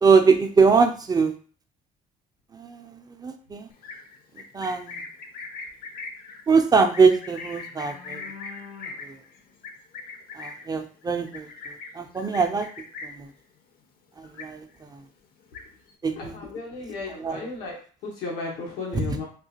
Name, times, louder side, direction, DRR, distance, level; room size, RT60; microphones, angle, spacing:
voice 1, 0.0-1.3 2.5-3.7 4.4-5.0 6.5-8.2 9.0-9.2 10.3-11.5 11.9-12.7 13.0-13.3 14.2-14.7 14.9-15.0 16.0-16.4 17.2-17.4 18.9-19.2, right 5 dB, 25° right, 6 dB, 0.4 m, -22 dB
Livestock farm animals working animals, 3.7-13.3 13.7-14.0 14.2-14.9 15.2-15.9, left 4 dB, 60° left, 0.7 m, -40 dB
voice 2, 16.1-19.2, left 3 dB, 90° left, -2 dB, 1.0 m, -35 dB
3.6 x 2.4 x 2.8 m, 0.41 s
cardioid pair, 110°, 17 cm